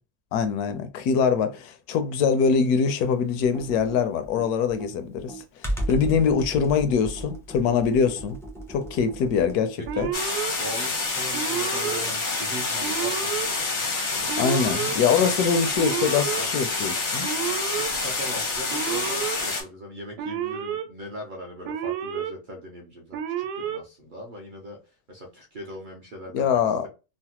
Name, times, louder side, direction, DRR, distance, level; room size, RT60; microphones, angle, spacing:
voice 1, 0.3-5.4 5.9-8.4 8.7-10.1 14.4-17.3 26.3-26.9, left 6 dB, 75° left, 1.1 m, -23 dB
Computer keyboard, 3.4-10.3, right 1 dB, 5° left, 0.3 m, -35 dB
voice 2, 9.8-10.1 10.5-13.7 14.1-14.5 15.2-15.3 16.3-16.5 17.3-17.4 17.6-24.8 25.1-26.9, equal, 55° right, 0.5 m, -40 dB
Alarm, 9.9-10.5 11.3-12.0 12.8-13.5 14.3-14.9 15.7-16.4 17.2-17.9 18.7-19.4 20.2-20.8 21.6-22.3 23.1-23.8, right 9 dB, 85° right, 1.1 m, -30 dB
sound 1, 10.1-19.6, left 3 dB, 50° left, 0.6 m, -28 dB
3.2 x 2.1 x 2.8 m
omnidirectional pair, 1.7 m